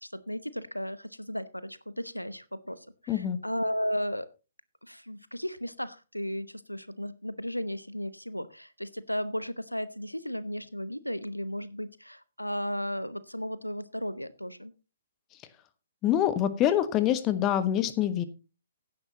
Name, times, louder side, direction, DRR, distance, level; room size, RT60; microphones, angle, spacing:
voice 1, 0.0-4.3 4.8-14.7, equal, 90° left, 16 dB, 0.9 m, -35 dB
voice 2, 3.1-3.4 16.0-18.2, left 11 dB, 20° left, 12 dB, 1.2 m, -25 dB
16.0 x 10.5 x 2.9 m, 0.31 s
figure-of-eight pair, 125°, 0 cm